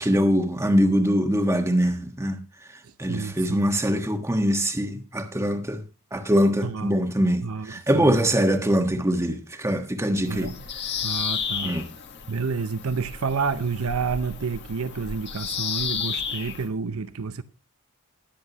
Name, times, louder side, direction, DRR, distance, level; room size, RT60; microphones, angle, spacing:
voice 1, 0.0-2.4 3.0-5.8 6.1-10.5 11.6-11.8, equal, 15° right, 1.3 m, -23 dB
voice 2, 2.8-3.7 6.6-6.9 7.4-8.2 10.3-10.5 11.0-11.8 12.3-17.4, right 5 dB, 75° right, 0.6 m, -29 dB
Bird vocalization bird call bird song, 10.3-16.7, left 7 dB, 55° left, 1.5 m, -32 dB
20.5 x 7.7 x 2.9 m
head